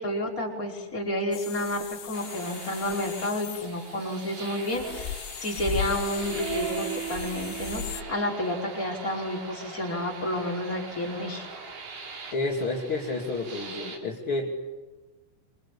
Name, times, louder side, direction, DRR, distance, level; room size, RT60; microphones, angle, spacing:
voice 1, 0.0-11.5, left 1 dB, 15° left, -1 dB, 4.9 m, -30 dB
sound 1, 1.3-8.0, left 10 dB, 80° left, 3.6 m, -38 dB
Shortwave radio static & tones, 2.1-14.0, right 6 dB, 55° right, 5.9 m, -40 dB
voice 2, 12.3-14.6, left 2 dB, 35° left, -1 dB, 2.4 m, -30 dB
27.0 x 26.0 x 8.5 m, 1.2 s
omnidirectional pair, 5.7 m